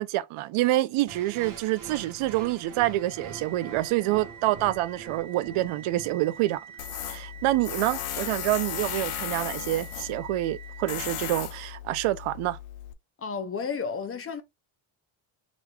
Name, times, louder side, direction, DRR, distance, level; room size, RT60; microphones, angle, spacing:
voice 1, 0.0-6.6 7.0-12.6, right 16 dB, 85° right, 0.6 m, -27 dB
sound 1, 1.1-7.1, right 6 dB, 40° right, 0.9 m, -44 dB
sound 2, 2.7-11.2, right 7 dB, 65° right, 1.1 m, -47 dB
Tools, 6.8-12.9, left 12 dB, 85° left, 0.7 m, -36 dB
voice 2, 13.2-14.4, left 5 dB, 30° left, 0.5 m, -32 dB
4.8 x 3.1 x 2.2 m
cardioid pair, 165°, 49 cm